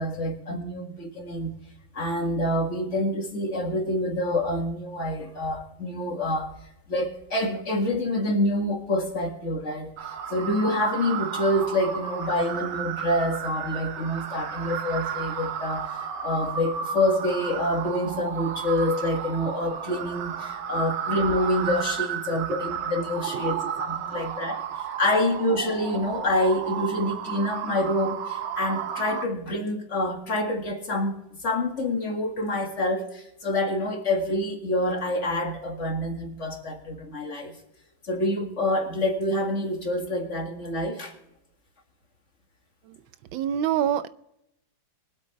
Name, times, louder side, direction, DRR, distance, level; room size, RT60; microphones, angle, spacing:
voice 1, 0.0-1.5 1.9-6.5 6.9-31.2 31.4-37.6 38.0-41.1, left 1 dB, 40° left, 2.2 m, -27 dB
sound 1, 10.0-29.3, right 8 dB, 70° right, 1.5 m, -33 dB
voice 2, 23.1-23.7 24.1-24.3 42.8-43.0 43.3-44.1, right 10 dB, 85° right, 1.4 m, -28 dB
22.5 x 8.2 x 3.3 m
omnidirectional pair, 2.1 m